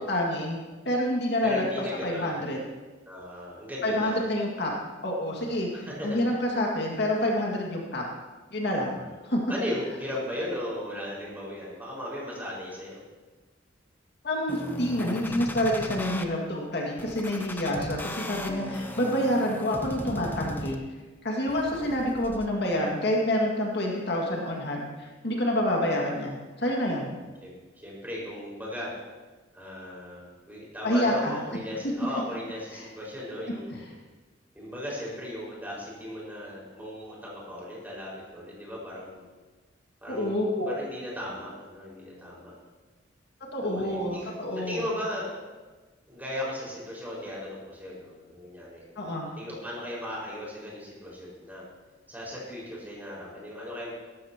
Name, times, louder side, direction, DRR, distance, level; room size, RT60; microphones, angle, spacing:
voice 1, 0.1-0.6 0.9-1.6 2.0-2.6 3.8-4.7 5.0-8.0 8.5-8.9 9.2-9.4 14.2-20.8 21.2-27.1 30.8-31.3 31.8-31.9 32.7-32.9 40.1-40.8 43.5-44.8 49.0-49.3, left 1 dB, 60° left, -1 dB, 2.1 m, -28 dB
voice 2, 1.4-2.4 3.1-4.3 5.4-6.3 9.5-13.0 17.3-17.6 21.7-22.1 27.4-27.5 27.8-28.9 29.5-33.8 34.5-39.3 40.0-42.6 43.6-45.4 46.1-48.8 49.4-51.6 52.1-53.9, left 1 dB, 10° right, -5 dB, 5.2 m, -37 dB
sound 1, 14.5-16.2 17.0-21.0 21.5-22.5, left 1 dB, 10° left, 0.8 m, -37 dB
17.0 x 14.5 x 3.0 m, 1.3 s
head